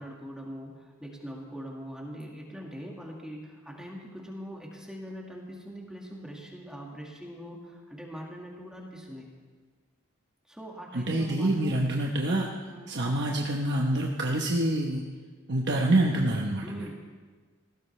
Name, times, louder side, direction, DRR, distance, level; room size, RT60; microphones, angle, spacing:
voice 1, 0.0-9.3 10.5-11.8 12.7-13.0 16.6-16.9, equal, 5° right, -2 dB, 1.8 m, -42 dB
voice 2, 10.9-12.5 12.9-15.0 15.5-16.8, right 1 dB, 55° right, 0 dB, 1.0 m, -26 dB
18.5 x 16.0 x 3.3 m, 1.5 s
head